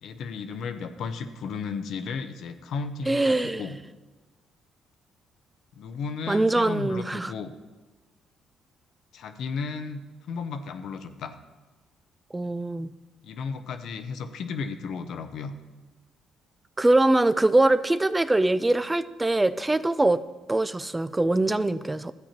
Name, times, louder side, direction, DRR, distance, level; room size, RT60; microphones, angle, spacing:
voice 1, 0.0-3.8 5.8-7.5 9.1-11.4 13.2-15.5, left 5 dB, 70° left, 9 dB, 0.6 m, -34 dB
voice 2, 3.1-3.7 6.3-7.3 12.3-12.9 16.8-20.2 20.5-22.1, right 2 dB, 15° right, 14 dB, 0.4 m, -23 dB
12.5 x 8.5 x 2.9 m, 1.2 s
supercardioid pair, 60°, 0 cm